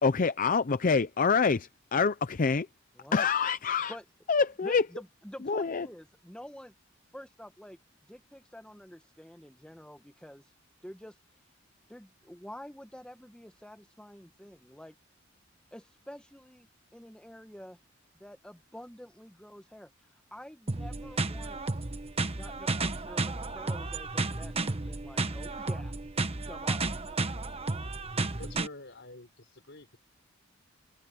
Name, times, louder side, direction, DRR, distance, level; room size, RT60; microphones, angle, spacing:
voice 1, 0.0-2.7 3.1-3.9 4.3-4.9 5.5-5.9, left 5 dB, 45° left, 0.6 m, -26 dB
voice 2, 3.0-3.3 3.9-4.0 4.6-6.7 7.1-7.8 8.1-10.4 10.8-11.2 11.9-14.9 15.7-16.7 16.9-17.8 18.2-19.9 20.3-21.6 22.3-25.9 26.4-27.1, equal, 5° left, 1.2 m, -48 dB
sound 1, 20.7-28.7, right 3 dB, 30° right, 1.2 m, -32 dB
voice 3, 28.3-30.0, left 2 dB, 60° left, 6.0 m, -47 dB
head